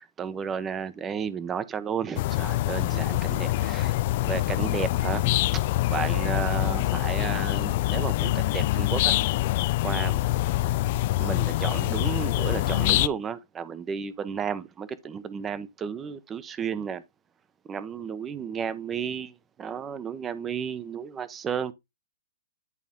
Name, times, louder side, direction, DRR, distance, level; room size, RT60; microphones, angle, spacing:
voice 1, 0.0-3.9 4.2-5.3 5.9-9.1 9.8-10.2 11.2-17.0 17.7-21.7, right 7 dB, 15° right, 0.9 m, -33 dB
sound 1, 2.2-13.1, left 16 dB, 45° left, 0.4 m, -25 dB
11.0 x 4.1 x 3.7 m
hypercardioid pair, 145°, 0 cm